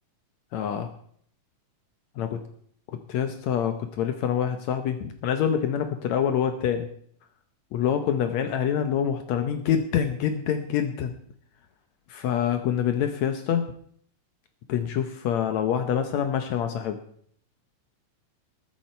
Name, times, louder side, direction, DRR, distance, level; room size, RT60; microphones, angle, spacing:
voice 1, 0.5-0.9 2.2-2.4 3.1-6.9 7.7-11.1 12.1-13.6 14.7-17.0, left 8 dB, 75° left, 7 dB, 2.2 m, -26 dB
21.0 x 8.8 x 4.5 m, 0.62 s
omnidirectional pair, 3.3 m